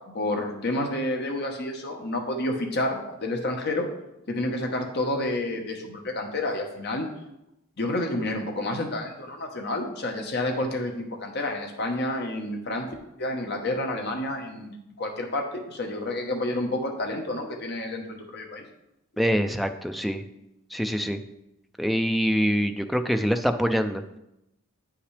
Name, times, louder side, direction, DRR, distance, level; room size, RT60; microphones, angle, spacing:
voice 1, 0.1-3.9 4.3-7.1 7.8-12.9 13.2-18.6, left 1 dB, 50° left, 2 dB, 1.0 m, -29 dB
voice 2, 19.2-20.2 20.7-21.2 21.8-24.0, equal, ahead, 7 dB, 0.4 m, -25 dB
8.7 x 5.8 x 3.3 m, 0.88 s
head